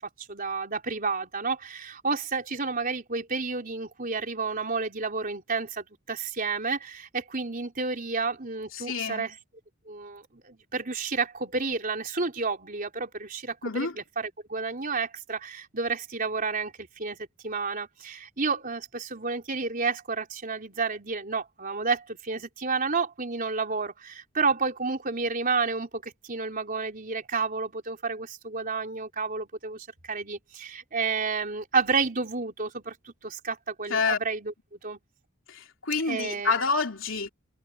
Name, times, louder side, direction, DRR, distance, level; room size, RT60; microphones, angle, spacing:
voice 1, 0.2-9.3 9.9-35.0 36.1-36.6, right 4 dB, 40° right, 4.0 m, -31 dB
voice 2, 8.7-9.3 13.6-13.9 33.9-34.2 35.5-37.3, left 4 dB, 65° left, 3.5 m, -28 dB
head